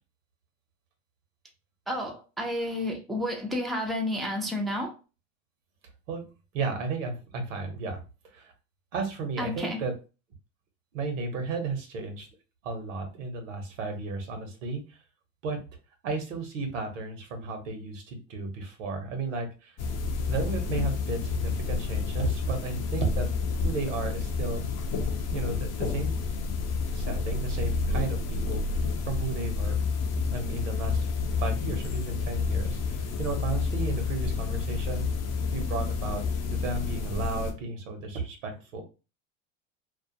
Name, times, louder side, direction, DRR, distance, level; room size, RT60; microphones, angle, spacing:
voice 1, 1.9-5.0 9.4-9.8, left 1 dB, ahead, 0.5 m, -31 dB
voice 2, 6.5-8.0 8.3-8.5 8.9-9.9 10.9-12.3 12.6-14.8 15.4-15.6 16.0-19.7 20.3-23.3 23.6-24.7 25.3-26.1 26.8-28.6 29.1-29.8 30.3-31.1 31.4-35.0 35.5-36.2 36.5-38.8, right 3 dB, 80° right, 0.9 m, -33 dB
sound 1, 19.8-37.5, left 4 dB, 45° left, 0.6 m, -29 dB
2.3 x 2.2 x 2.7 m
hypercardioid pair, 85°, 37 cm